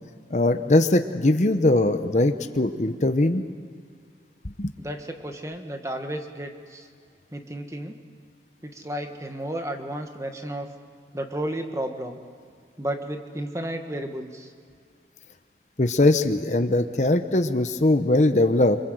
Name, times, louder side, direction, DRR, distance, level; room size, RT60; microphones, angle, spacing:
voice 1, 0.3-3.4 4.6-4.7 15.8-18.8, left 2 dB, 40° left, 8 dB, 0.9 m, -21 dB
voice 2, 4.8-6.9 7.3-8.0 8.6-10.7 11.1-12.2 12.8-14.5, right 1 dB, 15° right, 5 dB, 1.6 m, -32 dB
26.5 x 25.0 x 7.9 m, 2.2 s
head